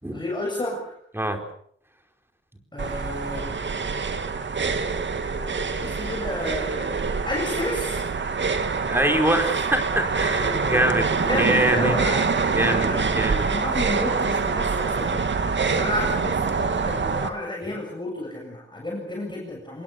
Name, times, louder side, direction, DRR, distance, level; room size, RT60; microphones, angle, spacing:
voice 1, 0.1-0.9 2.7-3.5 5.4-7.0 7.3-8.0 10.4-12.4 12.6-13.1 13.4-15.1 15.6-19.8, left 1 dB, 25° left, -1 dB, 7.4 m, -31 dB
sound 1, 2.8-17.3, right 5 dB, 70° right, 2.4 m, -25 dB
voice 2, 8.9-11.1 11.4-11.9 12.5-13.5 17.6-17.7, right 1 dB, 10° right, 5 dB, 4.5 m, -24 dB
27.0 x 22.0 x 6.9 m, 0.66 s
wide cardioid pair, 105°, 20 cm